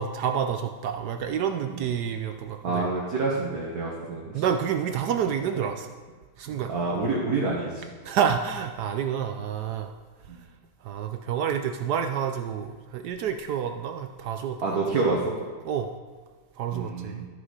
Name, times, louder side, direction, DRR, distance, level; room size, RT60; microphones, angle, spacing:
voice 1, 0.0-2.9 4.3-5.9 6.4-6.7 8.0-9.9 10.8-14.6 15.6-16.0 16.6-17.3, right 8 dB, 70° right, 7 dB, 1.0 m, -28 dB
voice 2, 2.6-4.4 6.5-7.8 10.3-10.4 14.6-15.3 16.7-17.3, right 3 dB, 55° right, -4 dB, 1.8 m, -28 dB
13.0 x 6.1 x 4.7 m, 1.5 s
omnidirectional pair, 2.1 m